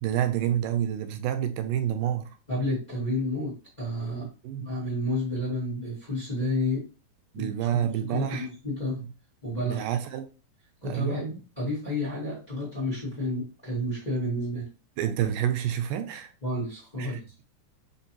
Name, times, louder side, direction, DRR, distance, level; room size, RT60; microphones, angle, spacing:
voice 1, 0.0-2.4 4.4-4.7 7.3-8.5 9.6-10.3 10.8-11.2 15.0-16.3 17.0-17.4, right 10 dB, 85° right, 2.2 m, -28 dB
voice 2, 2.5-4.3 4.6-6.8 7.3-9.0 9.4-9.9 10.8-14.7 16.4-17.2, left 1 dB, 20° left, 1.2 m, -30 dB
5.2 x 3.6 x 2.9 m
omnidirectional pair, 3.7 m